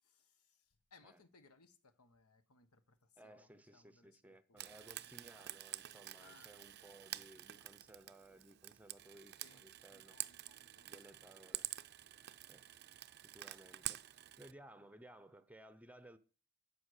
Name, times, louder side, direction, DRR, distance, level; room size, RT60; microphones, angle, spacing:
voice 1, 0.0-5.2 6.2-6.5 9.4-11.3 12.0-12.1 12.4-12.5, left 4 dB, 80° left, 1.4 m, -68 dB
voice 2, 3.2-10.2 10.8-11.6 12.5-12.6 13.2-14.0 14.4-16.2, right 1 dB, 5° right, 0.6 m, -59 dB
Frying (food), 4.6-14.5, right 14 dB, 45° right, 0.5 m, -48 dB
12.5 x 8.7 x 6.5 m
head